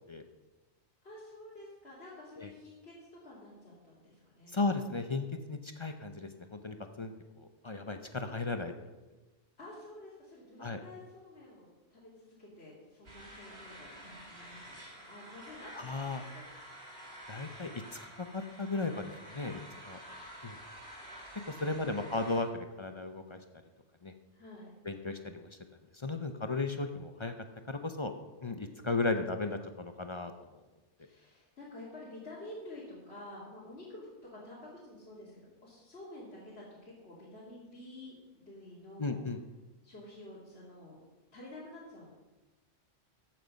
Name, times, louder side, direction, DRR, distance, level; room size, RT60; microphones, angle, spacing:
voice 1, 1.0-4.6 9.6-16.7 20.0-20.8 21.5-22.1 24.3-24.7 31.0-39.2 39.8-41.0 41.3-42.1, left 1 dB, 65° left, -8 dB, 3.0 m, -50 dB
voice 2, 4.5-7.1 7.4-8.7 10.6-10.8 15.8-16.2 17.3-17.7 18.3-19.6 19.9-20.0 21.5-23.4 24.0-24.1 24.9-25.2 26.0-27.3 27.7-28.1 28.4-30.3 39.0-39.4, left 3 dB, 30° left, 7 dB, 0.6 m, -35 dB
sound 1, 13.0-22.4, right 1 dB, 55° right, 2.7 m, -49 dB
14.5 x 7.7 x 5.3 m, 1.2 s
omnidirectional pair, 1.2 m